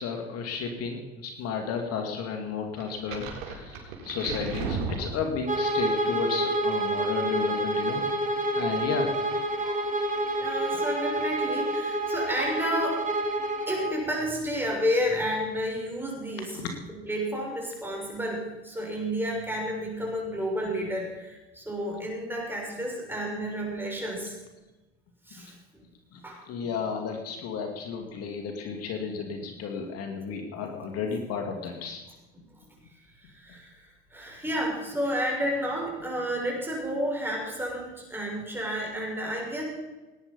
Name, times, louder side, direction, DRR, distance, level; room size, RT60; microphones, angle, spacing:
voice 1, 0.0-8.1 8.6-9.2 9.6-9.9 16.5-16.7 25.4-25.5 26.1-32.0, left 6 dB, 55° left, 4 dB, 2.4 m, -33 dB
sound 1, 2.8-5.7, right 4 dB, 70° right, 3.9 m, -34 dB
Bowed string instrument, 5.4-14.0, right 1 dB, 25° right, 2.5 m, -28 dB
voice 2, 10.4-13.0 13.7-16.6 16.9-24.3 25.3-25.5 26.2-26.4 33.2-33.7 34.1-39.6, equal, 5° right, -2 dB, 6.4 m, -31 dB
18.5 x 10.0 x 5.4 m, 1.1 s
supercardioid pair, 100°, 29 cm